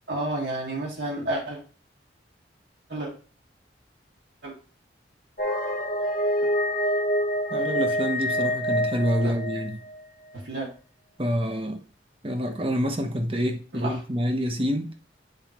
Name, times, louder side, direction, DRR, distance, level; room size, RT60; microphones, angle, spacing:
voice 1, 0.1-1.6 2.9-3.1 4.4-4.5 6.4-6.5 9.2-9.4 10.3-10.7 13.8-14.0, right 1 dB, 75° right, 1.7 m, -30 dB
sound 1, 5.4-10.1, equal, 50° left, 1.1 m, -26 dB
voice 2, 7.5-9.8 11.2-11.8 12.2-14.9, equal, 30° right, 0.9 m, -27 dB
8.9 x 4.6 x 3.0 m
head